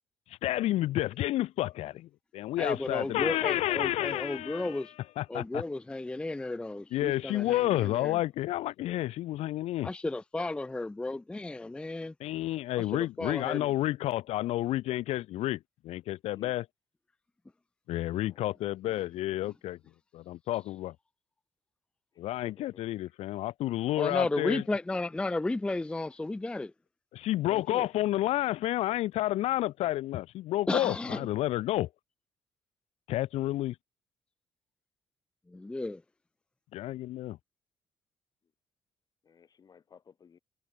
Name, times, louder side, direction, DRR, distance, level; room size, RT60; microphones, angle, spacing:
voice 1, 0.4-2.1 2.3-4.8 5.2-5.6 6.9-9.9 12.2-15.6 15.8-16.7 17.9-19.8 20.1-20.9 22.2-24.6 27.1-31.9 33.1-33.7 36.7-37.4, left 15 dB, 80° left, 1.0 m, -30 dB
voice 2, 2.6-4.9 5.3-8.2 9.8-12.1 12.8-13.7 24.0-26.7 27.5-27.9 30.7-31.3 35.5-36.0, left 2 dB, 10° left, 0.4 m, -33 dB
voice 3, 18.1-18.4 22.4-22.7 39.3-40.4, left 6 dB, 35° left, 1.5 m, -55 dB
cardioid pair, 115°, 11 cm